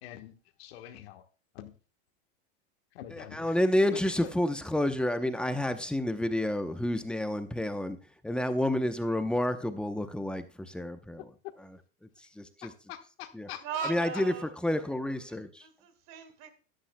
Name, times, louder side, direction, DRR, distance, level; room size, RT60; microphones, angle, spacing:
voice 1, 0.0-0.3 0.6-1.2 1.5-1.7 2.9-3.5 3.9-4.3 11.2-11.5 12.2-12.3 12.6-14.2, left 12 dB, 75° left, 1.4 m, -45 dB
voice 2, 3.3-8.0 8.2-11.2 12.4-12.7 13.4-13.5 13.9-14.3 14.6-15.6, left 1 dB, 5° left, 0.8 m, -29 dB
voice 3, 13.6-14.5 15.3-16.5, right 7 dB, 55° right, 2.1 m, -39 dB
13.5 x 11.5 x 2.2 m
supercardioid pair, 120°, 31 cm